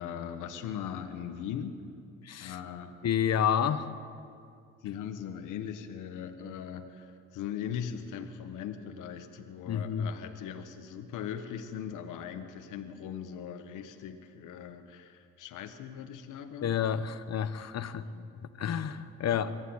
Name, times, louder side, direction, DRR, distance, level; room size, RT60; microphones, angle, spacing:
voice 1, 0.0-1.8 2.4-2.9 4.8-16.7 18.0-18.3 19.2-19.5, left 8 dB, 90° left, 7 dB, 1.4 m, -40 dB
voice 2, 2.2-2.6 3.0-3.9 9.7-10.1 16.6-18.1 18.6-19.5, left 8 dB, 55° left, 12 dB, 1.2 m, -29 dB
23.0 x 14.5 x 9.6 m, 2.4 s
cardioid pair, 90°, 30 cm